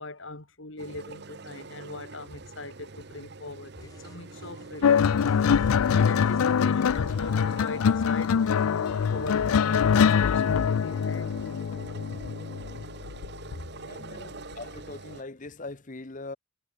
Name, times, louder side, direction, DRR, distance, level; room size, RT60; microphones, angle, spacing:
voice 1, 0.0-5.2 5.9-8.6 9.1-11.3 13.5-13.6 14.0-14.2, left 2 dB, 60° left, 3.0 m, -40 dB
sound 1, 0.8-15.2, right 3 dB, 50° right, 1.0 m, -45 dB
sound 2, 3.8-6.6, left 1 dB, 15° left, 3.4 m, -53 dB
sound 3, 4.8-13.5 14.5-14.8, left 7 dB, 85° left, 0.4 m, -24 dB
voice 2, 13.9-16.4, left 2 dB, 35° left, 1.0 m, -41 dB
head